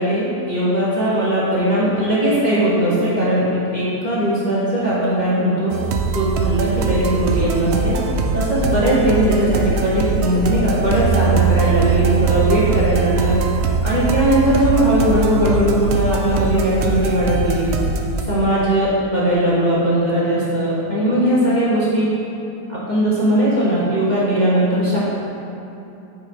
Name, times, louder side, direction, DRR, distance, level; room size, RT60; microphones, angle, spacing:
voice 1, 0.0-3.4 3.7-5.7 6.1-8.0 8.3-13.4 13.8-17.7 18.3-22.1 22.7-25.0, right 1 dB, 25° left, -10 dB, 1.5 m, -19 dB
sound 1, 5.7-18.2, right 5 dB, 70° right, 0.6 m, -21 dB
8.1 x 5.8 x 4.9 m, 2.9 s
omnidirectional pair, 1.9 m